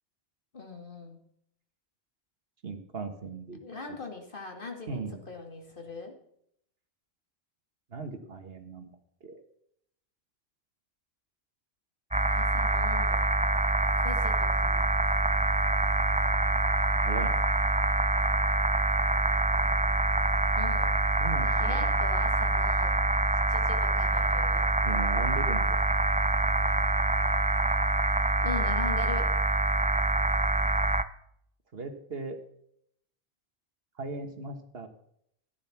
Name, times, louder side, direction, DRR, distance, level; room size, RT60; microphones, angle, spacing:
voice 1, 0.5-1.2 3.6-6.1 12.3-13.2 14.0-14.8 20.6-20.9 21.4-23.1 23.5-24.6 28.4-29.3, left 3 dB, 55° left, 3 dB, 2.3 m, -40 dB
voice 2, 2.6-3.6 4.9-5.2 7.9-8.9 9.2-9.4 16.9-17.4 21.2-21.9 24.8-25.8 31.7-32.4 34.0-34.9, right 4 dB, 65° right, 7 dB, 1.7 m, -37 dB
sound 1, 12.1-31.0, right 2 dB, 10° right, 0.3 m, -25 dB
14.5 x 9.6 x 5.9 m, 0.72 s
omnidirectional pair, 1.1 m